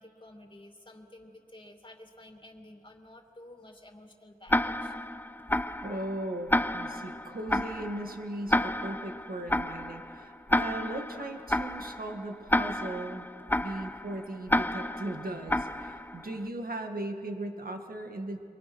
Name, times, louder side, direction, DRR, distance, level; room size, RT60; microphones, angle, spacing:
voice 1, 0.0-5.0 5.7-5.8, left 1 dB, 30° left, 3 dB, 2.7 m, -52 dB
Tick-tock, 4.5-16.4, left 1 dB, 10° left, 0.6 m, -31 dB
voice 2, 5.8-13.3 13.6-18.4, right 1 dB, 65° right, 4 dB, 2.0 m, -38 dB
27.5 x 23.5 x 6.2 m, 2.4 s
wide cardioid pair, 55°, 16 cm